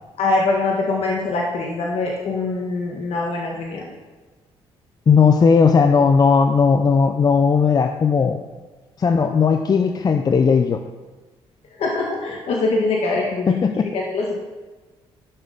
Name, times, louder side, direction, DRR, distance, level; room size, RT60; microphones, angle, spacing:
voice 1, 0.2-3.9 11.7-13.6 13.9-14.4, left 3 dB, 65° left, -1 dB, 1.7 m, -23 dB
voice 2, 5.1-8.4 9.0-10.8 13.5-13.9, left 5 dB, 35° left, 7 dB, 0.6 m, -16 dB
12.5 x 6.3 x 5.5 m, 1.3 s
cardioid pair, 90°, 11 cm